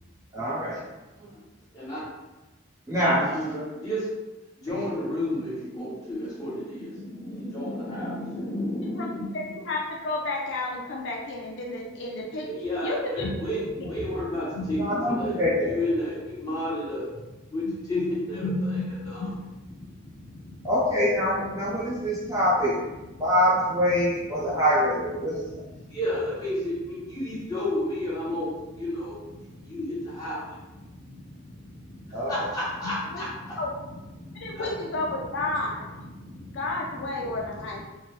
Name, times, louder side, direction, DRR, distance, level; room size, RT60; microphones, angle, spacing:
voice 1, 0.3-0.8 2.9-3.3 14.7-15.8 20.6-22.8 23.2-25.4 32.1-32.4, equal, 15° right, -7 dB, 0.5 m, -24 dB
voice 2, 3.1-4.1 4.6-9.5 12.5-17.2 17.5-20.7 21.6-22.4 23.1-23.3 24.3-24.6 25.3-33.6 34.2-34.7 36.0-36.6 37.3-37.8, left 1 dB, 15° left, -9 dB, 1.0 m, -32 dB
voice 3, 9.3-12.5 12.8-13.3 13.8-13.9 33.1-33.2 33.6-33.7 34.4-35.9 36.5-37.8, left 2 dB, 55° left, -2 dB, 0.4 m, -31 dB
3.1 x 2.0 x 3.1 m, 1.1 s
head